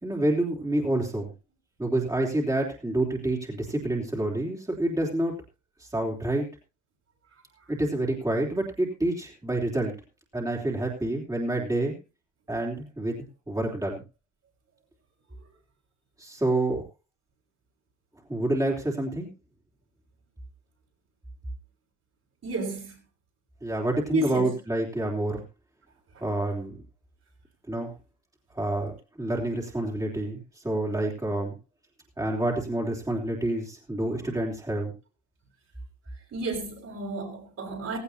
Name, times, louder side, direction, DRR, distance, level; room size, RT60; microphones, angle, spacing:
voice 1, 0.0-1.3 1.8-5.3 5.8-6.5 7.7-9.9 10.3-11.9 12.5-14.0 16.2-16.8 18.3-19.3 23.6-25.4 26.2-26.8 27.7-27.9 28.5-31.5 32.2-34.9, right 1 dB, 10° right, 3.5 m, -28 dB
voice 2, 22.4-23.0 24.1-24.5 36.3-38.0, right 2 dB, 55° right, 6.0 m, -31 dB
16.5 x 15.5 x 2.8 m
cardioid pair, 90°, 30 cm